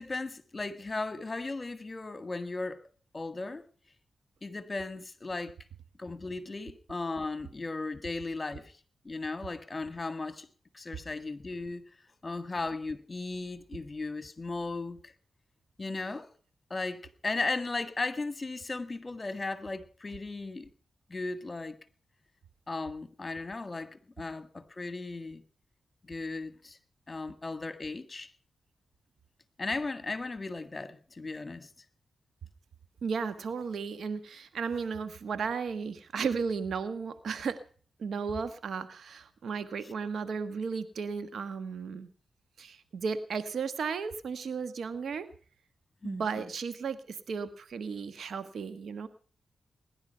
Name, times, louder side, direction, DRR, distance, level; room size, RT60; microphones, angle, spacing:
voice 1, 0.0-2.8 3.1-3.7 4.4-5.5 6.0-8.8 9.0-10.5 10.7-11.8 12.2-15.1 15.8-16.3 16.7-20.7 21.1-21.8 22.7-25.4 26.0-26.8 27.1-28.3 29.6-31.7 46.0-46.5, left 3 dB, 35° left, 1.8 m, -36 dB
voice 2, 33.0-37.6 38.0-42.1 42.6-45.3 46.0-49.1, right 5 dB, 75° right, 1.4 m, -34 dB
20.5 x 11.0 x 5.7 m
cardioid pair, 50°, 0 cm